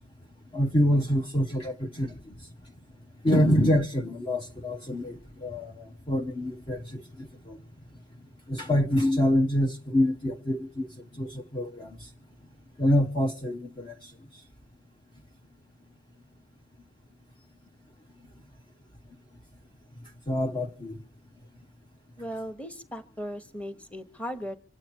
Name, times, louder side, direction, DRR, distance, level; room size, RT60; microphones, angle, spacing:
voice 1, 0.5-2.2 3.2-7.6 8.5-10.9 11.1-12.1 12.8-14.1 20.3-21.0, equal, 25° left, 0.9 m, -26 dB
voice 2, 22.2-24.6, equal, 5° left, 1.3 m, -37 dB
26.0 x 8.9 x 4.5 m
head